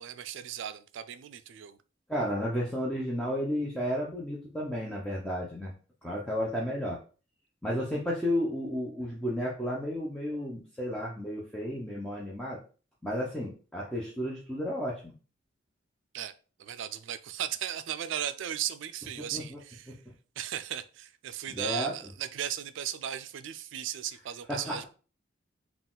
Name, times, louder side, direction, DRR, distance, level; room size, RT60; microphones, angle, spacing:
voice 1, 0.0-1.8 16.1-16.3 16.6-20.0 20.4-24.9, right 10 dB, 70° right, 0.3 m, -36 dB
voice 2, 2.1-5.7 6.0-7.0 7.6-12.6 13.0-15.1 19.2-19.6 21.5-21.9 24.5-24.9, equal, 5° left, 0.7 m, -32 dB
4.0 x 2.4 x 3.7 m
head